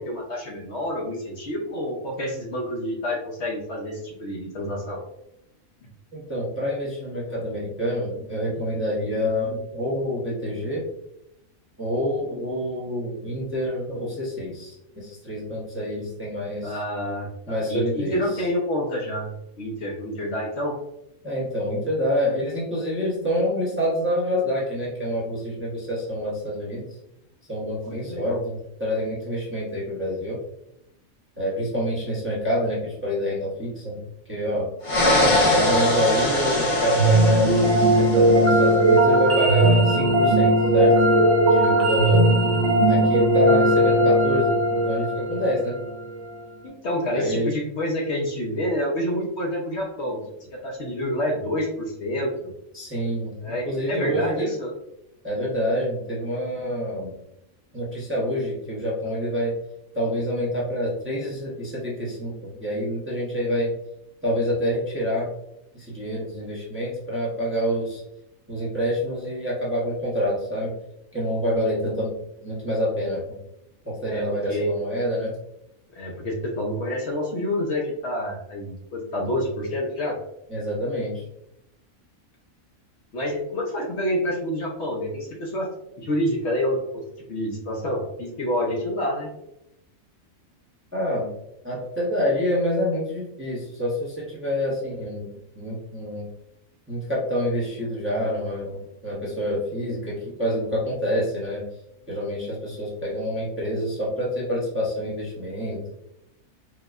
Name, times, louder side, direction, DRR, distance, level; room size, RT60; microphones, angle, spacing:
voice 1, 0.0-5.0 16.6-19.3 19.6-20.7 27.9-28.4 46.6-50.2 50.6-52.5 53.4-54.7 74.1-74.7 75.9-80.2 83.1-85.7 86.0-86.8 87.3-89.3, equal, 60° left, -1 dB, 0.9 m, -28 dB
voice 2, 6.1-10.8 11.8-16.8 17.5-18.5 21.2-27.0 27.5-30.4 31.4-34.0 34.3-34.7 35.5-40.9 41.5-42.2 42.8-45.8 47.1-47.5 52.7-54.6 55.2-57.1 57.7-59.5 59.9-63.7 64.2-65.3 65.7-68.0 68.5-70.7 71.1-73.3 73.8-75.3 80.5-81.2 90.9-91.3 91.6-95.3 95.5-96.3 96.9-101.6 102.1-105.8, equal, 10° right, -7 dB, 0.8 m, -27 dB
sound 1, 34.8-38.7, left 1 dB, 40° left, 0.5 m, -22 dB
sound 2, 37.0-46.1, right 1 dB, 55° right, 0.8 m, -18 dB
4.7 x 2.3 x 2.4 m, 0.81 s
omnidirectional pair, 1.4 m